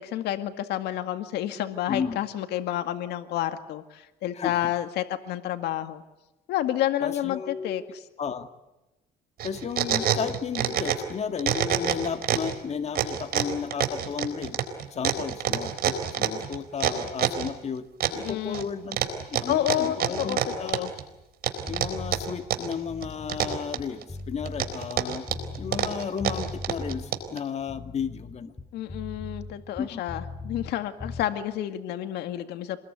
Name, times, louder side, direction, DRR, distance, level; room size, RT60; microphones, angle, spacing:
voice 1, 0.0-6.0 6.5-8.0 18.1-18.7 19.5-20.9 28.7-32.8, left 12 dB, 80° left, 9 dB, 2.0 m, -30 dB
voice 2, 1.9-2.2 4.3-4.7 7.0-7.8 8.2-8.5 9.4-17.9 18.2-20.9 21.7-25.3 25.6-28.5 29.8-30.1, left 6 dB, 40° left, 8 dB, 2.0 m, -33 dB
sound 1, 9.4-11.1 11.4-12.5 12.9-17.5 18.0-18.6 18.9-21.0 21.4-22.7 23.0-24.0 24.5-27.4, right 10 dB, 65° right, 4.1 m, -26 dB
sound 2, 21.7-22.3 22.8-25.9 26.2-27.1 27.6-30.7 31.0-31.3, left 2 dB, 20° left, 3.2 m, -39 dB
27.5 x 20.5 x 9.7 m, 0.96 s
cardioid pair, 110°, 17 cm